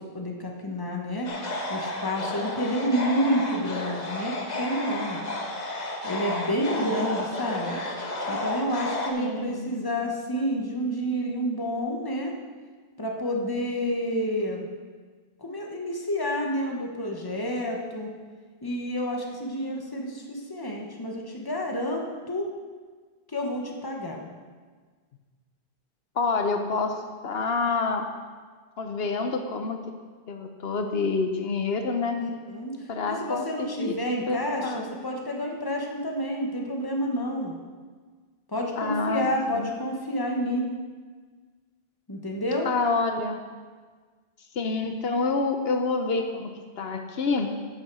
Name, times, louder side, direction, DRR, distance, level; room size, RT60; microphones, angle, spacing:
voice 1, 0.0-1.3 1.7-5.2 6.0-7.8 8.3-12.3 13.0-14.7 15.4-18.1 18.6-22.5 23.3-24.3 32.2-32.8 33.0-37.5 38.5-40.7 42.1-42.7, equal, 20° left, 1 dB, 1.3 m, -29 dB
sound 1, 1.3-9.1, left 1 dB, 45° left, 1.2 m, -32 dB
voice 2, 9.2-9.7 26.2-28.1 28.8-29.8 30.3-32.2 32.9-34.9 38.8-39.7 42.6-43.4 44.5-46.5 46.8-47.5, left 4 dB, 75° left, 5 dB, 1.1 m, -27 dB
9.5 x 7.9 x 6.2 m, 1.5 s
omnidirectional pair, 1.0 m